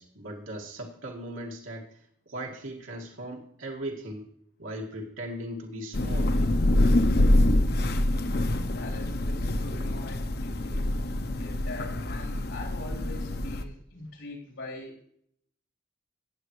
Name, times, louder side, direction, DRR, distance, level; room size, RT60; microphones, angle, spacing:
voice 1, 0.0-1.9 2.3-4.3 4.6-6.3, right 1 dB, 90° right, -1 dB, 2.0 m, -38 dB
Thunder / Rain, 5.9-13.6, left 1 dB, 50° left, 0.7 m, -25 dB
voice 2, 8.7-10.9 11.3-15.0, left 2 dB, 90° left, -1 dB, 3.8 m, -43 dB
18.0 x 7.8 x 3.2 m, 0.67 s
head